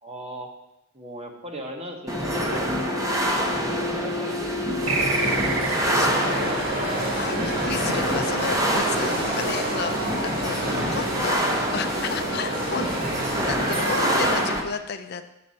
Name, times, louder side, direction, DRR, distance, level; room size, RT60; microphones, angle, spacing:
voice 1, 0.0-0.5 0.9-4.8 10.6-11.4 12.4-12.6, right 1 dB, 30° right, 2 dB, 1.1 m, -38 dB
sound 1, 2.1-14.6, equal, 15° right, 0.8 m, -26 dB
sound 2, 4.8-14.4, right 1 dB, 45° right, 2.1 m, -29 dB
sound 3, 4.9-7.9, right 3 dB, 75° right, 0.8 m, -29 dB
voice 2, 5.9-6.6 7.1-11.4 11.7-12.9 13.3-15.2, left 6 dB, 55° left, 8 dB, 0.5 m, -32 dB
7.7 x 6.7 x 4.2 m, 0.90 s
head